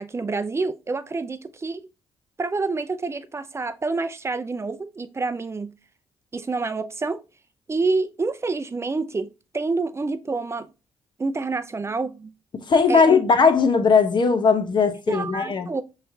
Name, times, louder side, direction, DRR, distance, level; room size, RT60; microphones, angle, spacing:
voice 1, 0.0-1.8 2.4-5.7 6.3-7.2 7.7-10.7 11.2-12.3 12.9-13.2 15.1-15.8, right 3 dB, 25° right, 0.5 m, -27 dB
voice 2, 12.7-15.7, left 5 dB, 45° left, 0.9 m, -18 dB
5.5 x 3.2 x 2.7 m
cardioid pair, 75°, 11 cm